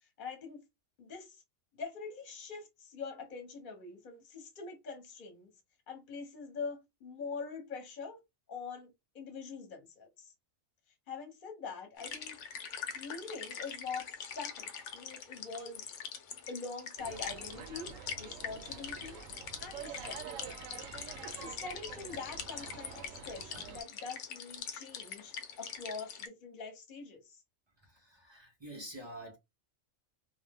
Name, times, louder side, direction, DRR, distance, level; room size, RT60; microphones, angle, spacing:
voice 1, 0.0-0.7 1.0-1.4 1.7-5.5 5.9-8.2 8.5-10.3 11.1-12.4 12.9-15.9 16.5-19.2 19.6-20.2 21.4-27.4, left 5 dB, 45° left, 1.0 m, -44 dB
sound 1, 12.0-26.3, left 7 dB, 70° left, 0.9 m, -44 dB
sound 2, 17.0-23.8, right 7 dB, 80° right, 0.9 m, -47 dB
voice 2, 27.8-29.4, right 1 dB, 45° right, 0.3 m, -47 dB
2.4 x 2.1 x 3.4 m
omnidirectional pair, 1.4 m